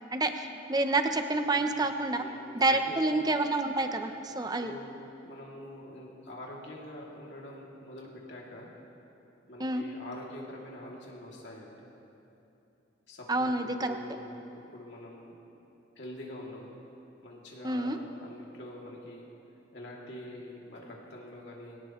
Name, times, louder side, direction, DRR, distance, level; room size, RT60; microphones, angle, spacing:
voice 1, 0.1-2.2 2.5-4.7 9.6-9.8 13.3-14.0 17.6-18.0, right 2 dB, 20° right, 7 dB, 0.7 m, -28 dB
voice 2, 2.7-3.0 4.6-8.7 9.5-11.9 13.1-15.3 16.0-16.7 17.2-19.3 19.7-21.8, left 1 dB, 70° left, -3 dB, 2.8 m, -45 dB
23.5 x 17.0 x 3.1 m, 2.9 s
head